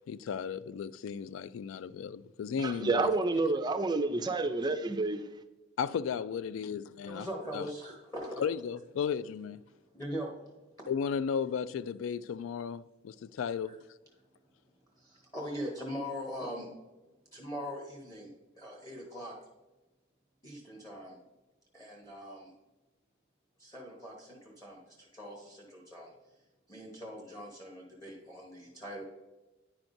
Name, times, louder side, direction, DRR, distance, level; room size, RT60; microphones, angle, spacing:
voice 1, 0.1-3.1 5.8-7.3 7.5-7.7 8.4-9.6 10.9-13.8, left 7 dB, 75° left, 0.3 m, -35 dB
voice 2, 2.6-5.2, right 3 dB, 20° right, 0.4 m, -29 dB
voice 3, 7.1-8.5 9.9-10.3 13.7-13.8 15.0-16.7 17.3-19.3 20.4-21.2 21.7-22.5 23.6-26.1 26.7-29.0, equal, 15° left, 1.1 m, -41 dB
9.8 x 5.8 x 2.6 m
head